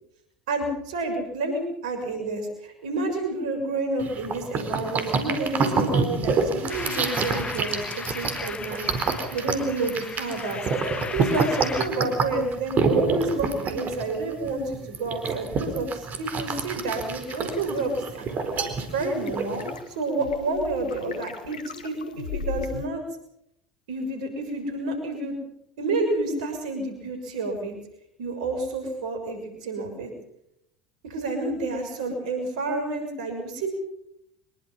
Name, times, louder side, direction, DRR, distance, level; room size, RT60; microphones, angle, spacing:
voice 1, 0.5-18.2 18.9-21.6 21.8-23.0 23.9-25.3 25.8-27.8 28.2-30.1 31.0-33.7, right 2 dB, 70° right, 5 dB, 6.5 m, -29 dB
sound 1, 4.0-19.8, right 4 dB, 45° right, 4.4 m, -28 dB
sound 2, 6.7-11.9, left 5 dB, 25° left, 1.4 m, -36 dB
sound 3, 16.8-22.9, left 5 dB, 85° left, 1.9 m, -38 dB
24.5 x 22.0 x 5.7 m, 0.77 s
hypercardioid pair, 70°, 4 cm